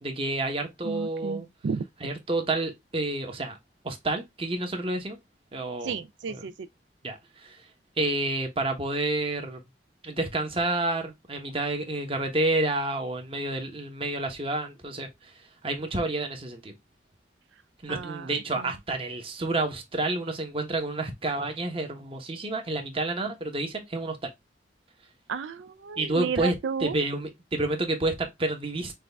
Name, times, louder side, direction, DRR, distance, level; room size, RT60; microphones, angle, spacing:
voice 1, 0.0-1.5 2.0-3.6 3.8-5.2 5.5-6.0 6.3-6.5 7.0-7.6 8.0-9.6 10.0-15.3 15.6-16.7 17.8-24.3 26.0-26.5 26.8-28.9, right 2 dB, 30° right, 1.0 m, -29 dB
voice 2, 0.8-1.8 5.8-6.5 17.9-18.3 18.6-18.7 25.3-26.9, right 6 dB, 85° right, 0.4 m, -32 dB
6.1 x 2.4 x 3.4 m
head